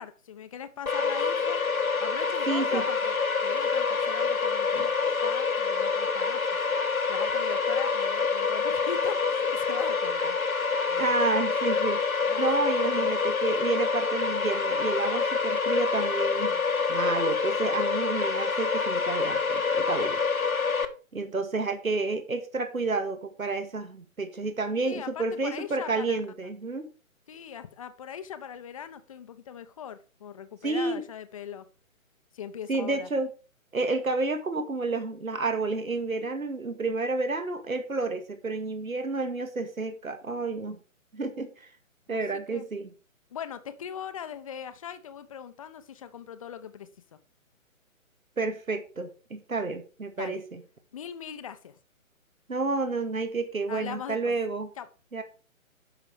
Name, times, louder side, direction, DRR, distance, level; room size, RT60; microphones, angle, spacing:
voice 1, 0.0-1.6 2.0-6.4 7.1-10.4 10.9-11.1 12.3-12.4 12.7-13.1 24.9-26.2 27.3-31.7 32.3-33.1 42.1-42.7 43.3-46.9 50.2-50.4 50.9-51.8 53.7-54.3 54.8-54.9, left 8 dB, 25° left, 12 dB, 0.8 m, -40 dB
sound 1, 0.9-20.9, left 5 dB, 85° left, 1.6 m, -27 dB
voice 2, 2.5-2.8 4.8-4.9 11.0-16.6 16.9-20.5 21.1-26.9 30.6-31.0 32.7-33.3 33.7-40.8 41.1-41.7 42.1-42.9 48.4-50.6 52.5-54.7 55.1-55.2, right 3 dB, 75° right, 8 dB, 2.1 m, -30 dB
11.0 x 6.9 x 4.9 m, 0.34 s
figure-of-eight pair, 140°, 41 cm